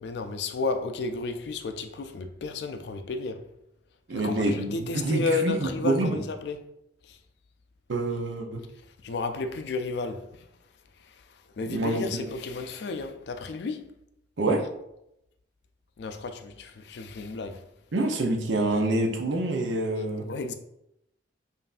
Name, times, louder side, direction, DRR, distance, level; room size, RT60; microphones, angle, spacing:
voice 1, 0.0-3.5 4.1-6.6 7.0-7.2 9.0-10.5 11.0-13.9 16.0-17.6 20.3-20.5, left 3 dB, 65° left, 0.4 m, -32 dB
voice 2, 4.1-6.2 7.9-8.6 11.7-12.3 14.4-14.6 17.9-20.3, right 2 dB, 85° right, 0.6 m, -27 dB
5.3 x 2.5 x 2.4 m
head